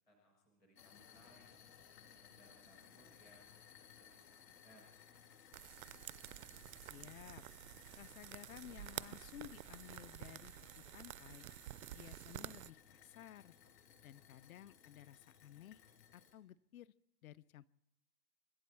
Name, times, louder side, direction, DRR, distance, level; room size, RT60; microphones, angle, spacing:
voice 1, 0.1-1.5 2.1-3.6 3.9-4.9, equal, 5° left, 0 dB, 0.5 m, -67 dB
sound 1, 0.8-16.3, left 8 dB, 85° left, 2.9 m, -62 dB
sound 2, 5.5-12.7, right 14 dB, 60° right, 0.5 m, -50 dB
voice 2, 6.8-7.4 8.0-11.5 11.9-13.6 14.0-15.8 16.1-16.9 17.2-17.7, left 12 dB, 60° left, 18 dB, 0.5 m, -55 dB
26.0 x 12.0 x 4.5 m, 0.83 s
supercardioid pair, 170°, 48 cm